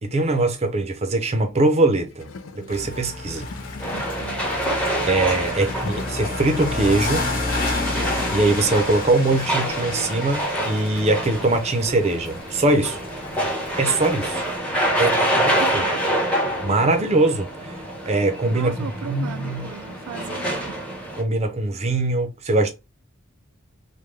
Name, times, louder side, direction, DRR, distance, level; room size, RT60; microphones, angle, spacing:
voice 1, 0.0-2.3 2.5-3.5 5.1-7.3 8.3-13.0 13.8-14.4 15.0-15.8 16.6-17.8 18.1-19.7 21.1-22.7, right 2 dB, 30° right, 0.6 m, -22 dB
Gurgling / Toilet flush, 2.1-7.0 7.8-7.9, left 4 dB, 70° left, 0.5 m, -40 dB
sound 1, 2.7-14.6, left 2 dB, 45° left, 1.2 m, -31 dB
sound 2, 3.8-21.2, right 1 dB, 5° left, 1.0 m, -27 dB
voice 2, 4.2-4.5 5.5-5.7 15.1-16.1 18.5-20.8, right 7 dB, 80° right, 0.4 m, -37 dB
3.5 x 2.2 x 3.2 m
head